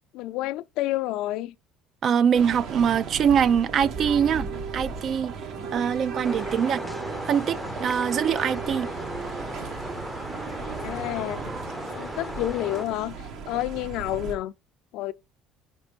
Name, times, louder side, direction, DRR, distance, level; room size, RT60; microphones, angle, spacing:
voice 1, 0.1-1.5 10.8-11.5 11.9-13.2 13.5-14.5 14.9-15.1, left 15 dB, 75° left, 0.4 m, -29 dB
voice 2, 2.0-5.3 5.7-6.8 7.3-8.9, right 7 dB, 45° right, 0.4 m, -23 dB
sound 1, 2.3-14.3, right 5 dB, 65° right, 1.4 m, -36 dB
sound 2, 3.7-7.8, right 5 dB, 30° right, 1.2 m, -43 dB
sound 3, 6.2-12.9, left 1 dB, ahead, 0.6 m, -36 dB
5.3 x 5.0 x 5.2 m
cardioid pair, 120°, 0 cm